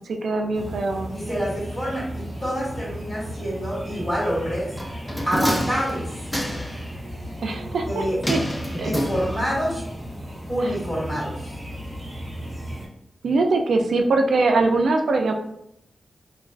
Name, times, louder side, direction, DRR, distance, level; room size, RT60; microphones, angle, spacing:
voice 1, 0.2-1.1 7.4-8.4 8.7-8.9 13.2-15.3, right 3 dB, 85° right, 3 dB, 0.3 m, -22 dB
sound 1, 0.5-12.9, equal, 30° right, 0.8 m, -35 dB
voice 2, 1.1-4.7 5.2-6.2 7.8-8.2 8.7-9.8 10.5-11.5, equal, 35° left, -7 dB, 1.2 m, -27 dB
sound 2, 4.8-6.9 8.2-9.7 10.0-10.1, equal, 10° left, 0.4 m, -28 dB
2.4 x 2.3 x 2.3 m, 0.76 s
cardioid pair, 65°, 0 cm